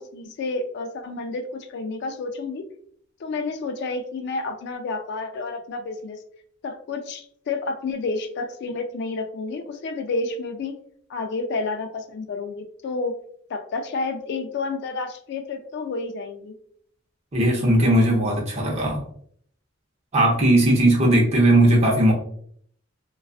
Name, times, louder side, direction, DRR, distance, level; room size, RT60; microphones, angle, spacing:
voice 1, 0.0-2.6 3.2-6.2 6.6-10.8 11.1-13.1 13.5-16.6, left 3 dB, 55° left, 6 dB, 0.3 m, -30 dB
voice 2, 17.3-19.0 20.1-22.1, right 1 dB, 35° right, -1 dB, 0.7 m, -18 dB
2.3 x 2.3 x 2.3 m, 0.63 s
head